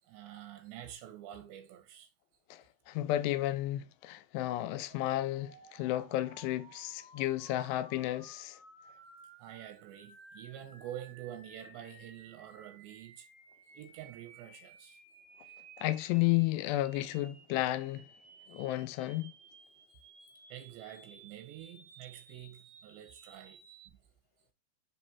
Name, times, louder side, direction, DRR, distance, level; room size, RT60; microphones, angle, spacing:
voice 1, 0.0-2.1 9.4-13.3 13.7-15.0 19.9-20.0 20.5-24.0, right 11 dB, 85° right, 3.4 m, -48 dB
voice 2, 2.5-8.6 15.8-18.1 18.5-19.3, left 15 dB, 85° left, 2.6 m, -32 dB
sound 1, 4.9-23.9, right 4 dB, 55° right, 3.0 m, -57 dB
7.4 x 3.1 x 4.2 m
omnidirectional pair, 5.0 m